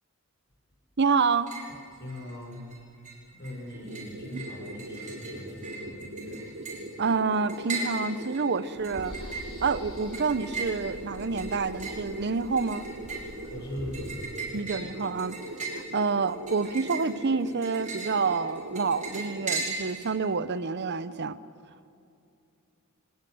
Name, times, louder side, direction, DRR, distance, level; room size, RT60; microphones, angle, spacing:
voice 1, 1.0-1.5 7.0-12.9 14.5-15.4 15.7-21.4, right 4 dB, 50° right, 15 dB, 0.8 m, -28 dB
sound 1, 1.2-1.8 2.1-2.8 3.0-20.1, right 4 dB, 35° right, 5.1 m, -38 dB
voice 2, 2.0-2.6 3.3-6.4 13.5-14.4, equal, 50° left, 1 dB, 6.1 m, -40 dB
sound 2, 3.7-19.6, right 1 dB, 80° right, 2.9 m, -41 dB
sound 3, 8.7-13.9, equal, 25° left, 7.8 m, -45 dB
24.5 x 19.0 x 7.9 m, 2.5 s
head